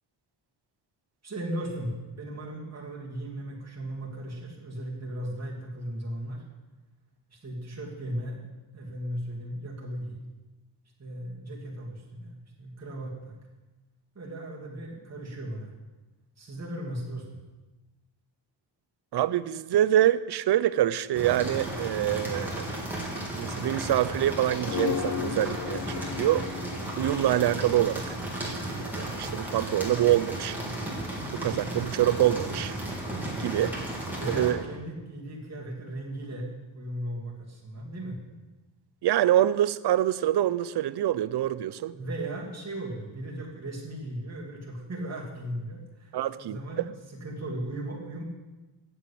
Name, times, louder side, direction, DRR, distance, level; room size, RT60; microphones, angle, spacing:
voice 1, 1.2-6.4 7.3-8.4 8.7-10.2 11.0-13.4 14.1-15.7 16.4-17.3 34.1-36.5 36.7-38.2 41.9-46.9 47.2-48.2, right 1 dB, 35° right, -4 dB, 2.6 m, -37 dB
voice 2, 19.1-22.8 23.4-26.5 27.0-28.2 28.4-30.6 31.3-32.7 33.4-33.7 34.3-34.6 39.0-42.0 46.1-46.9, right 12 dB, 55° right, 16 dB, 0.6 m, -25 dB
sound 1, 21.1-34.5, right 1 dB, 5° right, 3.0 m, -34 dB
sound 2, 24.7-27.9, left 10 dB, 45° left, 0.5 m, -34 dB
7.9 x 7.3 x 8.4 m, 1.2 s
cardioid pair, 95°, 47 cm